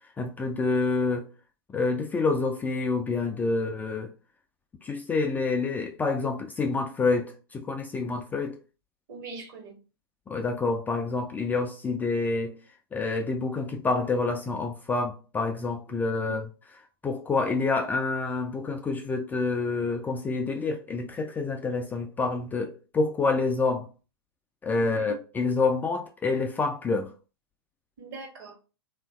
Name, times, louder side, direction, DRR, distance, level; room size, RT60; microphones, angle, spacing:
voice 1, 0.2-1.3 1.7-4.1 4.8-8.6 10.3-12.5 12.9-16.5 17.0-23.9 24.6-27.1, left 3 dB, 15° left, 0.3 m, -27 dB
voice 2, 9.1-9.7 15.9-16.4 24.8-25.2 28.0-28.6, right 3 dB, 55° right, 1.1 m, -42 dB
3.0 x 2.5 x 2.2 m
hypercardioid pair, 105°, 13 cm